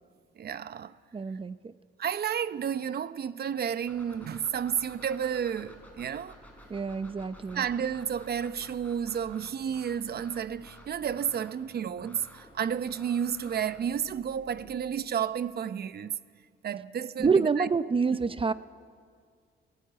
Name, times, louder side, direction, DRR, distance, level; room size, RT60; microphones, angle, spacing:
voice 1, 0.4-0.9 2.0-6.4 7.5-16.1 16.6-17.7, right 8 dB, 55° right, 0.9 m, -31 dB
voice 2, 1.1-1.7 6.7-7.6 17.2-18.5, right 5 dB, 25° right, 0.6 m, -27 dB
sound 1, 3.9-14.7, equal, 5° left, 6.0 m, -52 dB
25.5 x 16.5 x 9.4 m
cardioid pair, 90°, 20 cm